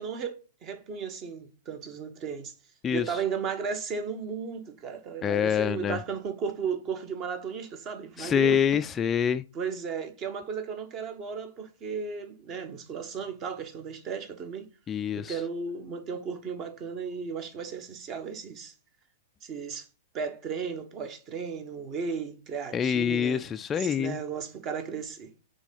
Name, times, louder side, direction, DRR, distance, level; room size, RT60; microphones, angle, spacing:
voice 1, 0.0-2.5 2.9-8.6 9.5-14.7 15.2-18.7 19.4-19.9 20.1-23.4 23.8-25.3, right 6 dB, 35° right, 1.3 m, -35 dB
voice 2, 2.8-3.2 5.2-6.0 8.2-9.4 14.9-15.4 22.7-24.2, left 8 dB, 20° left, 0.4 m, -26 dB
6.0 x 3.8 x 5.4 m
hypercardioid pair, 110°, 0 cm